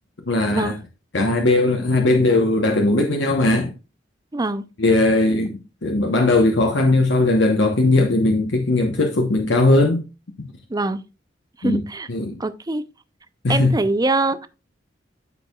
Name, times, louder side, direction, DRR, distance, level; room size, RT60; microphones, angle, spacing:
voice 1, 0.3-0.8 1.1-3.7 4.8-10.0 11.6-11.8 12.1-12.4 13.4-13.7, left 2 dB, 70° left, 1.1 m, -18 dB
voice 2, 4.3-4.7 10.7-11.0 11.6-12.1 12.4-12.8 13.5-14.5, right 2 dB, 20° right, 0.6 m, -23 dB
13.5 x 4.5 x 2.3 m
head